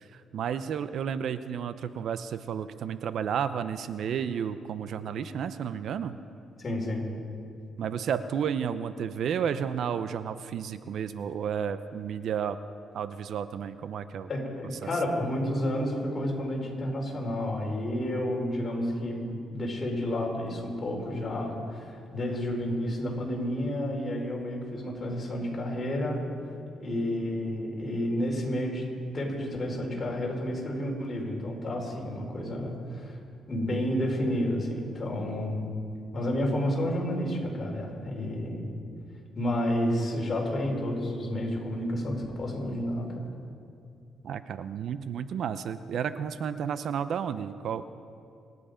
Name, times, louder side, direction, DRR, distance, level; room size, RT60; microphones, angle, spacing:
voice 1, 0.1-6.2 7.8-12.6 12.9-14.3 44.2-47.9, right 8 dB, 65° right, 12 dB, 0.6 m, -32 dB
voice 2, 6.6-7.1 14.3-26.3 26.8-28.9 29.1-33.2 33.5-35.7 36.1-38.7 39.3-43.2, left 1 dB, 35° left, -1 dB, 4.5 m, -30 dB
27.0 x 9.7 x 5.1 m, 2.5 s
cardioid pair, 90°, 0 cm